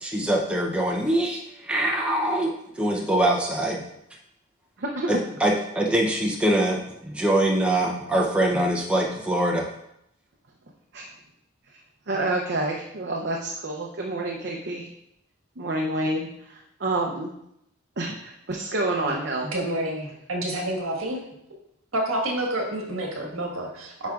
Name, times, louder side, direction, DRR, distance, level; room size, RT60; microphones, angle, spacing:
voice 1, 0.0-3.8 5.1-9.7, right 1 dB, 5° right, -1 dB, 0.6 m, -24 dB
voice 2, 4.8-5.2 10.9-11.1 12.1-14.9 15.6-17.4 18.0-19.5, right 2 dB, 50° right, 0 dB, 0.6 m, -28 dB
voice 3, 19.5-21.2 21.9-24.1, right 1 dB, 70° right, 0 dB, 1.6 m, -28 dB
9.0 x 5.1 x 2.4 m, 0.79 s
head